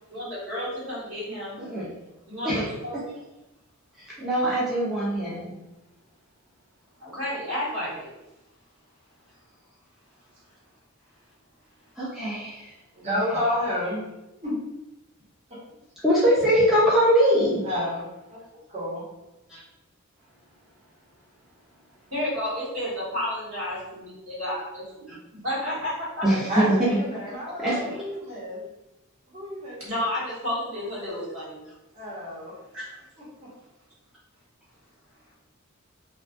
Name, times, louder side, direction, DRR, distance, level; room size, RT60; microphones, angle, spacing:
voice 1, 0.1-1.6 2.2-3.0 7.0-8.1 22.1-25.2 25.4-26.4 29.8-31.6 32.7-32.9, left 1 dB, 75° right, -8 dB, 1.3 m, -31 dB
voice 2, 1.6-1.9 2.4-2.6 4.0-5.6 12.0-12.7 13.1-13.2 16.0-17.6 19.5-19.6 26.2-27.0 27.6-28.0, equal, ahead, -9 dB, 0.5 m, -22 dB
voice 3, 12.9-14.0 14.4-14.6 15.5-15.6 17.6-18.4 18.7-19.0 26.5-28.6 29.3-29.8 31.9-32.5 33.2-33.5, left 1 dB, 30° right, -8 dB, 1.0 m, -30 dB
2.3 x 2.2 x 2.5 m, 0.96 s
head